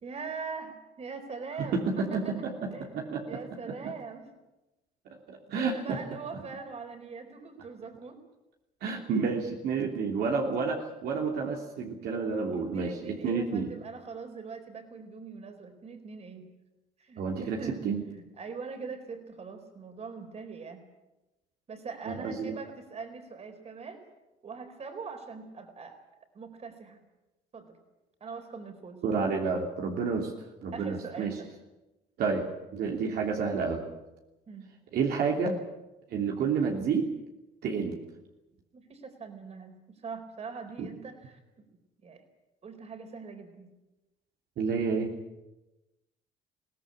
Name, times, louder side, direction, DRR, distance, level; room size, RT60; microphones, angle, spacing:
voice 1, 0.0-2.3 2.7-4.3 5.5-8.2 12.6-16.5 17.0-17.8 18.1-20.8 21.7-24.0 24.4-26.0 26.3-27.0 27.5-27.8 28.2-29.0 30.7-31.5 34.5-34.7 38.7-41.7 42.0-42.2 42.6-43.7, right 5 dB, 40° right, 6 dB, 4.4 m, -42 dB
voice 2, 1.6-3.4 5.3-6.0 8.8-13.7 17.2-17.6 17.8-18.0 22.1-22.5 29.0-30.3 30.6-31.4 32.2-33.8 34.9-35.6 36.1-37.1 37.6-38.0 40.8-40.9 44.6-45.1, right 5 dB, 70° right, 0 dB, 3.1 m, -30 dB
22.0 x 17.5 x 8.6 m, 1.0 s
cardioid pair, 110°, 17 cm